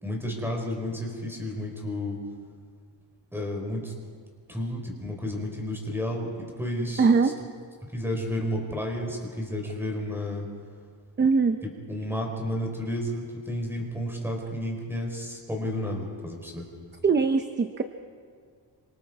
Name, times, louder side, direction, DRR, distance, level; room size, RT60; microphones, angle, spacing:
voice 1, 0.0-2.2 3.3-3.9 4.5-7.1 7.9-10.5 11.9-16.6, left 1 dB, 5° right, 1 dB, 4.5 m, -31 dB
voice 2, 7.0-7.3 11.2-11.6 17.0-17.8, right 4 dB, 25° right, 7 dB, 0.7 m, -21 dB
27.5 x 25.5 x 4.8 m, 2.1 s
wide cardioid pair, 170°, 42 cm